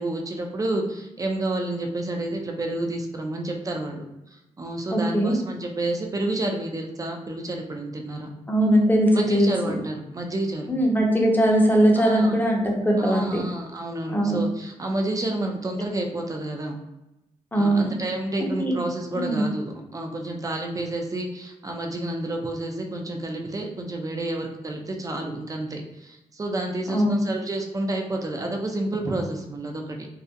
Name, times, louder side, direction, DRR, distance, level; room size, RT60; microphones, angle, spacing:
voice 1, 0.0-4.0 4.3-8.3 9.1-10.7 12.0-12.4 13.0-16.8 17.5-30.1, right 2 dB, 25° right, 2 dB, 0.5 m, -30 dB
voice 2, 4.9-5.3 8.5-9.8 10.7-13.4 14.1-14.4 17.5-17.9 18.4-18.7 19.1-19.5 26.9-27.2, equal, 15° left, -1 dB, 0.6 m, -20 dB
2.3 x 2.1 x 2.7 m, 0.93 s
cardioid pair, 65°, 13 cm